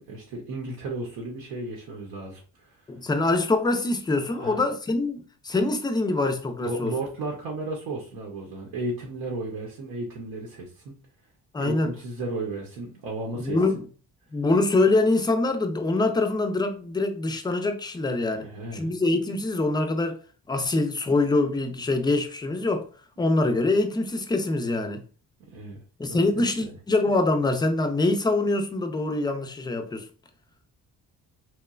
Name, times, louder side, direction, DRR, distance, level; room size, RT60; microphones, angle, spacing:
voice 1, 0.0-2.8 4.4-4.7 6.6-10.9 11.6-13.8 18.3-18.9 25.5-25.8 26.1-26.7, right 2 dB, 85° right, 0.8 m, -34 dB
voice 2, 2.9-6.9 11.5-11.9 13.3-13.8 14.3-18.5 18.7-20.2 20.5-22.9 23.2-25.0 26.0-30.1, left 2 dB, 10° left, 0.4 m, -24 dB
3.0 x 2.2 x 2.3 m
cardioid pair, 85°, 36 cm